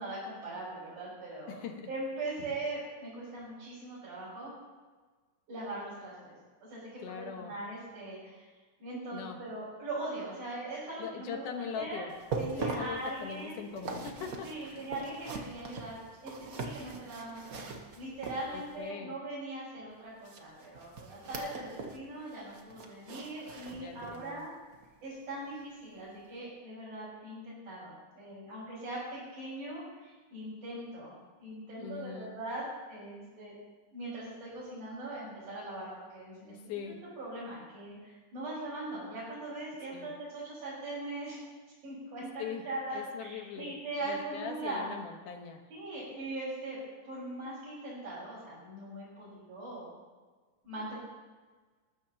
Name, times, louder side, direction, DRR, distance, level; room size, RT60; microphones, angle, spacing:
voice 1, 0.0-4.5 5.5-6.3 6.6-6.8 7.1-8.5 8.8-11.5 11.7-12.1 12.4-13.6 14.4-24.5 25.0-31.1 31.4-33.5 33.9-36.7 37.2-41.4 41.8-44.9 45.7-49.9 50.6-51.0, right 2 dB, 70° right, -11 dB, 6.6 m, -40 dB
voice 2, 1.5-1.9 7.0-7.6 9.1-9.4 11.0-12.1 12.5-14.8 18.5-19.2 23.7-24.5 31.8-32.3 36.5-37.0 39.9-40.1 42.4-42.7 42.9-45.6, left 7 dB, 90° left, 4 dB, 2.8 m, -41 dB
sound 1, 12.1-18.8 20.2-22.0 22.3-24.3 24.7-24.9 25.4-25.5, right 4 dB, 90° right, 0.7 m, -41 dB
19.5 x 13.5 x 2.9 m, 1.4 s
omnidirectional pair, 3.5 m